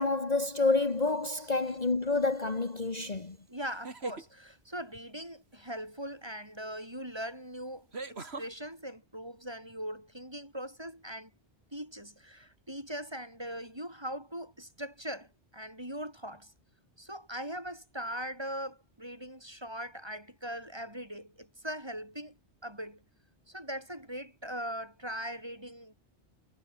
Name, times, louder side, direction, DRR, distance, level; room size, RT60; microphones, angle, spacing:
voice 1, 0.0-3.4, left 3 dB, 35° left, 1.7 m, -28 dB
sound 1, 1.1-1.5 3.6-4.3 6.5-6.6 7.9-8.5, right 3 dB, 65° right, 2.8 m, -41 dB
voice 2, 3.5-11.3 11.7-16.5 17.0-23.0 23.5-25.9, equal, 20° right, 8.1 m, -40 dB
omnidirectional pair, 1.2 m